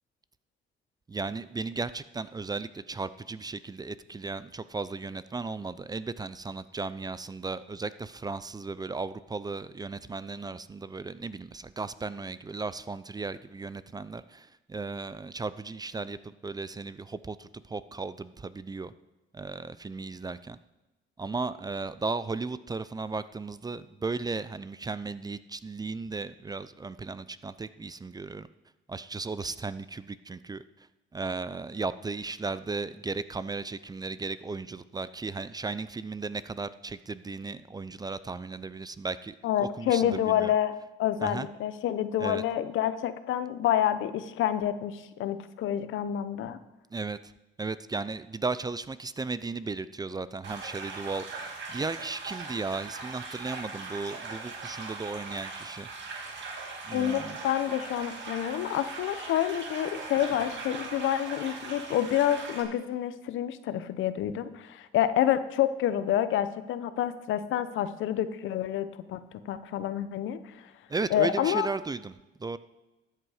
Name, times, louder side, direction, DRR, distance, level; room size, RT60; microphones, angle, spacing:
voice 1, 1.1-18.9 19.3-20.6 21.2-28.5 28.9-30.6 31.1-40.5 41.2-41.5 42.2-42.4 46.9-47.3 47.6-55.9 56.8-57.4 70.9-72.6, right 3 dB, 20° right, 15 dB, 0.4 m, -35 dB
voice 2, 39.4-40.7 41.0-46.6 56.9-70.4 71.1-71.7, left 11 dB, 80° left, 13 dB, 0.8 m, -28 dB
sound 1, 50.4-62.6, right 4 dB, 65° right, 2.1 m, -40 dB
13.5 x 7.9 x 4.9 m, 1.0 s
cardioid pair, 90°, 20 cm